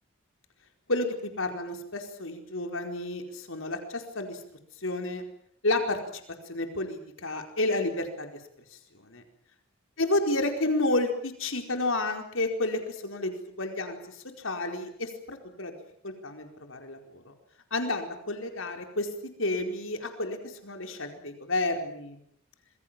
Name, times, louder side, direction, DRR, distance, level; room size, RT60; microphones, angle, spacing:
voice 1, 0.9-4.4 4.8-5.2 5.6-6.2 6.5-8.4 9.0-9.2 10.0-15.7 16.0-17.3 17.7-19.1 19.4-22.2, left 2 dB, 75° left, 5 dB, 4.7 m, -31 dB
27.0 x 22.0 x 7.6 m, 0.67 s
head